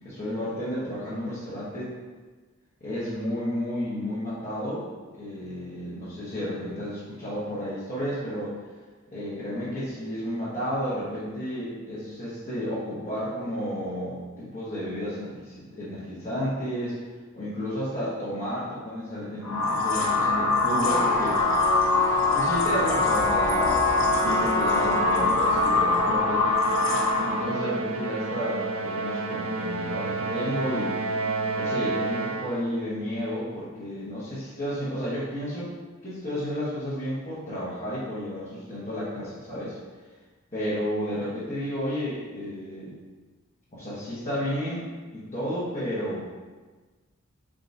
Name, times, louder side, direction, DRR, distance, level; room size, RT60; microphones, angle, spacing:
voice 1, 0.0-1.9 2.8-4.8 5.1-8.5 9.1-17.0 17.3-21.4 22.3-26.5 27.2-31.0 31.5-35.7 36.0-39.8 40.5-42.9 43.7-44.9 45.1-46.2, equal, 35° left, -12 dB, 1.1 m, -32 dB
sound 1, 19.4-27.5, left 3 dB, 75° left, 0.9 m, -23 dB
Trumpet, 20.8-25.3, left 1 dB, 15° left, 0.5 m, -30 dB
Musical instrument, 24.2-32.7, right 3 dB, 70° right, 0.4 m, -30 dB
4.7 x 3.6 x 2.6 m, 1.3 s
head